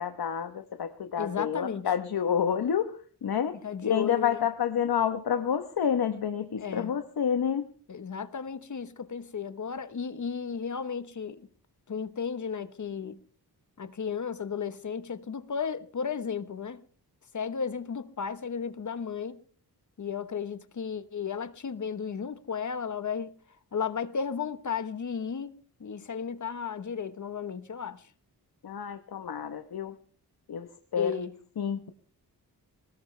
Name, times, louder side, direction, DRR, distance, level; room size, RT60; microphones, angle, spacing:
voice 1, 0.0-7.7 28.6-30.0 30.5-31.2 31.6-31.9, left 8 dB, 65° left, 1.2 m, -29 dB
voice 2, 1.2-1.9 3.6-4.4 6.6-6.9 7.9-11.5 11.9-13.2 13.8-16.8 17.3-19.4 20.0-23.3 23.7-25.5 25.8-28.0 31.0-31.3, left 6 dB, 50° left, 1.2 m, -34 dB
22.0 x 19.0 x 3.4 m
wide cardioid pair, 150°, 39 cm